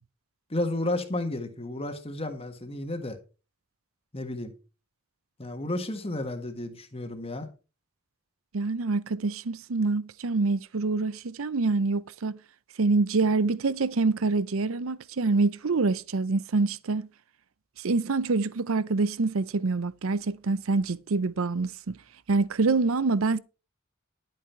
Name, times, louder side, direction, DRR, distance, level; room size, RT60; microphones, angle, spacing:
voice 1, 0.5-3.2 4.1-4.5 5.4-7.5, left 1 dB, 30° left, 1.6 m, -32 dB
voice 2, 8.5-12.4 12.8-17.1 17.8-22.0 22.3-23.4, right 3 dB, 80° right, 0.7 m, -26 dB
11.0 x 9.1 x 4.5 m
head